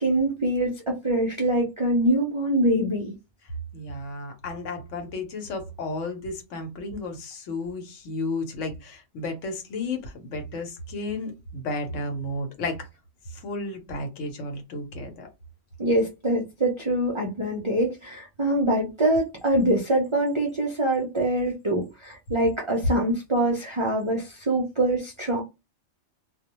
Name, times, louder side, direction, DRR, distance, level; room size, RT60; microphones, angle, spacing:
voice 1, 0.0-3.1 15.8-25.4, right 1 dB, 45° right, 0.4 m, -24 dB
voice 2, 3.7-12.9 13.3-15.3, left 2 dB, 75° left, 1.1 m, -33 dB
2.3 x 2.1 x 2.9 m
omnidirectional pair, 1.3 m